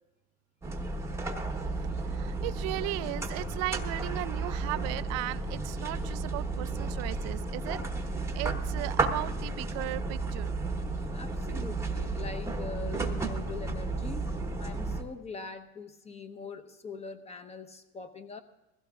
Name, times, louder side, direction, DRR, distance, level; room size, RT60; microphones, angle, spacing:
sound 1, 0.6-15.0, right 3 dB, 10° right, 1.0 m, -33 dB
voice 1, 2.1-7.8 8.3-10.5 11.5-11.6, right 19 dB, 55° right, 15 dB, 0.5 m, -36 dB
voice 2, 11.1-14.3 14.6-18.4, left 4 dB, 20° left, 8 dB, 0.9 m, -42 dB
21.0 x 15.5 x 2.4 m, 1.0 s
supercardioid pair, 120°, 32 cm